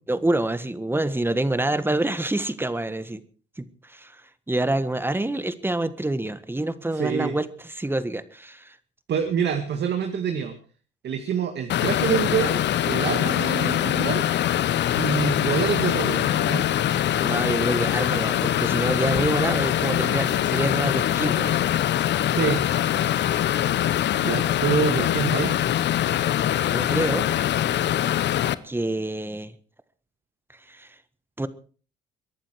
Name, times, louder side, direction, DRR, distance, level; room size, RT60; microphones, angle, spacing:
voice 1, 0.1-3.2 3.6-4.2 4.5-8.7 17.2-21.5 26.7-27.3 28.6-29.5 30.7-30.9 31.4-31.5, right 2 dB, 10° right, 13 dB, 1.5 m, -27 dB
voice 2, 6.9-7.3 9.1-10.5 11.0-14.2 15.0-16.7 22.3-22.6 24.2-25.5, right 7 dB, 55° right, 6 dB, 2.1 m, -26 dB
sound 1, 11.7-28.5, left 11 dB, 60° left, 1.0 m, -23 dB
23.0 x 11.5 x 4.7 m, 0.40 s
supercardioid pair, 75°, 21 cm